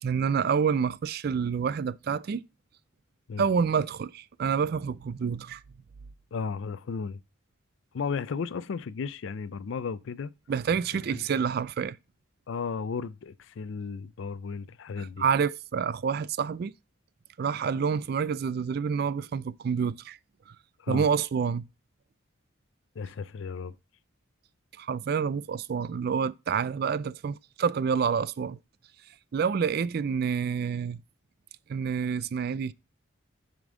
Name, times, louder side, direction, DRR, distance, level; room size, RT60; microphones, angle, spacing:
voice 1, 0.0-2.4 3.4-5.6 10.5-12.0 15.0-16.7 17.4-20.2 20.5-20.6 20.9-21.7 24.8-28.6 29.3-31.0 31.7-32.7, right 6 dB, 45° right, 0.3 m, -28 dB
voice 2, 6.3-7.2 7.9-10.3 11.1-11.2 12.5-15.2 20.8-21.1 23.0-23.8, left 5 dB, 65° left, 0.4 m, -34 dB
7.1 x 5.1 x 3.7 m
head